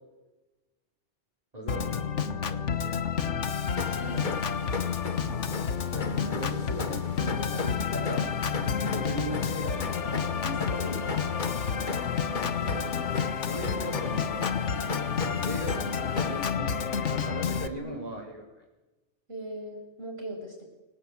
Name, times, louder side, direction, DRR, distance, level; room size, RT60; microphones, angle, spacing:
voice 1, 1.5-3.3 5.9-9.9 11.9-12.0 12.6-13.2 13.5-14.3 15.4-18.5, right 1 dB, 35° right, -5 dB, 5.4 m, -39 dB
Organ, 1.7-17.7, left 6 dB, 80° left, 1.6 m, -30 dB
sound 1, 3.8-16.5, left 4 dB, 45° left, 1.4 m, -37 dB
voice 2, 3.9-4.3 10.4-11.2 17.7-18.1 19.3-20.6, right 1 dB, 55° right, 1 dB, 7.2 m, -39 dB
29.0 x 17.5 x 8.8 m, 1.1 s
omnidirectional pair, 1.2 m